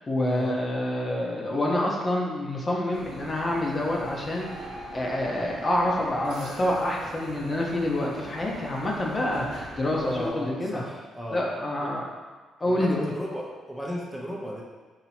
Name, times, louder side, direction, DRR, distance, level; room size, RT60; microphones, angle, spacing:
voice 1, 0.1-10.8 11.3-12.1 12.6-13.1, left 1 dB, 30° left, -2 dB, 0.9 m, -27 dB
sound 1, 2.9-10.3, right 1 dB, 90° right, 1.2 m, -42 dB
voice 2, 10.0-11.4 11.8-11.9 12.7-14.6, equal, 5° right, -3 dB, 0.8 m, -35 dB
4.1 x 2.9 x 4.3 m, 1.3 s
cardioid pair, 90°, 0 cm